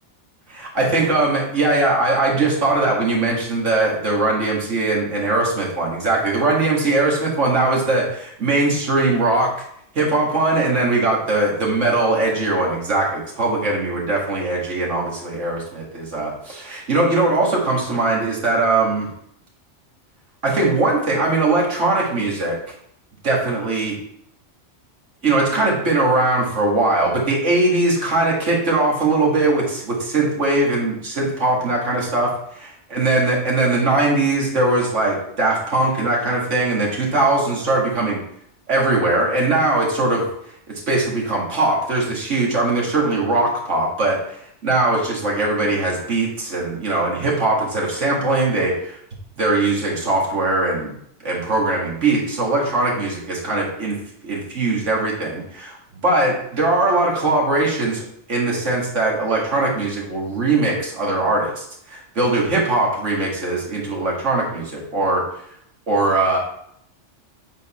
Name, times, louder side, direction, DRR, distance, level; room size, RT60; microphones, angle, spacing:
voice 1, 0.5-9.5 10.0-19.1 20.4-22.6 23.2-23.9 25.2-38.2 38.7-40.3 40.7-49.0 49.4-50.9 51.2-54.0 54.2-65.2 65.9-66.4, right 2 dB, 75° right, -3 dB, 2.2 m, -20 dB
8.2 x 4.3 x 4.2 m, 0.70 s
omnidirectional pair, 1.2 m